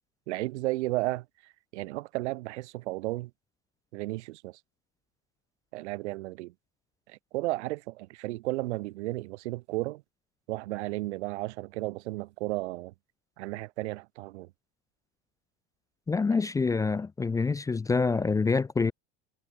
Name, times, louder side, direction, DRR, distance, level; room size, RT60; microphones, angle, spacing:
voice 1, 0.3-1.2 1.7-3.3 3.9-4.6 5.7-6.5 7.3-10.0 10.5-12.9 13.4-14.5, right 19 dB, 85° right, 5.8 m, -33 dB
voice 2, 16.1-18.9, left 4 dB, 10° left, 0.7 m, -26 dB
supercardioid pair, 155°, 33 cm